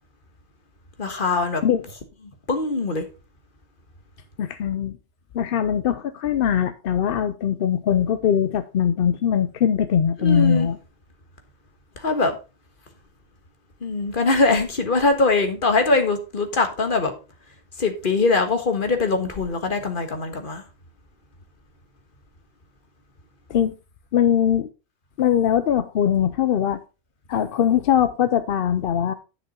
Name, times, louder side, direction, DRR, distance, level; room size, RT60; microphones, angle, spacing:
voice 1, 1.0-1.6 2.5-3.0 10.2-10.7 12.0-12.4 13.8-17.1 17.8-20.6, left 3 dB, 40° left, 1.6 m, -22 dB
voice 2, 4.4-5.0 5.3-10.8 23.5-23.7 24.1-24.7 25.2-26.8 27.3-29.1, left 9 dB, 55° left, 0.7 m, -21 dB
10.5 x 6.1 x 4.3 m
omnidirectional pair, 1.3 m